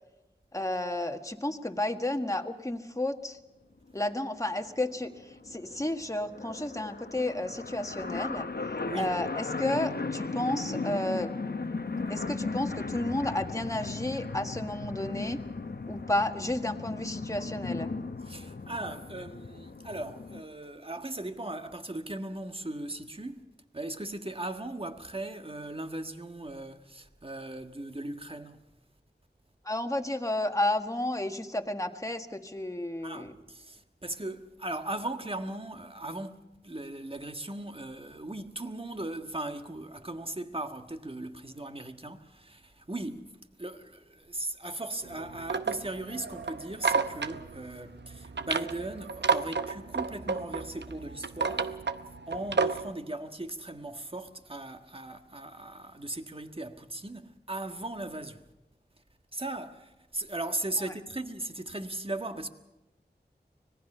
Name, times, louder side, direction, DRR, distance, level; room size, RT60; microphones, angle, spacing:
voice 1, 0.5-3.4 3.9-8.5 8.9-11.3 12.1-15.4 15.9-17.9 29.6-33.4, left 1 dB, 20° left, 1.6 m, -32 dB
sound 1, 3.9-4.0 4.3-4.4 4.6-20.4, left 3 dB, 65° left, 1.0 m, -36 dB
voice 2, 18.2-23.4 23.7-28.6 33.0-43.3 43.6-51.8 52.3-58.4 59.3-62.5, right 2 dB, 30° right, 1.5 m, -38 dB
sound 2, 45.0-52.9, right 4 dB, 80° right, 0.8 m, -32 dB
25.0 x 19.0 x 5.6 m
wide cardioid pair, 40°, 18 cm